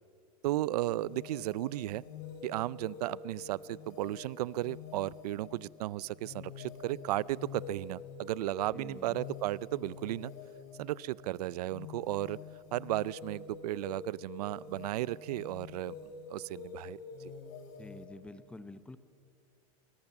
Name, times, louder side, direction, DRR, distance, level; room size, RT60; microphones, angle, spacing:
voice 1, 0.4-2.0 2.4-10.3 10.8-12.4 12.7-15.9 16.3-17.3, right 16 dB, 75° right, 22 dB, 0.5 m, -35 dB
sound 1, 0.9-18.1, left 6 dB, 60° left, 4.5 m, -47 dB
voice 2, 8.7-9.2 17.8-19.0, left 2 dB, 5° left, 13 dB, 0.9 m, -48 dB
28.5 x 23.5 x 7.2 m, 2.4 s
supercardioid pair, 150°, 20 cm